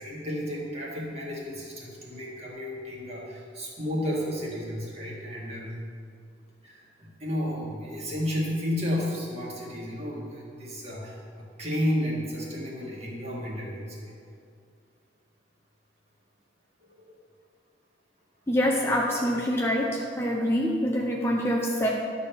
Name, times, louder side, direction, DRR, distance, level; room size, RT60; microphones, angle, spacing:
voice 1, 0.0-5.8 6.6-14.1 16.9-17.1, equal, 35° right, -4 dB, 1.9 m, -32 dB
voice 2, 18.5-21.9, equal, 15° left, -2 dB, 0.6 m, -25 dB
11.5 x 4.1 x 6.9 m, 2.3 s
head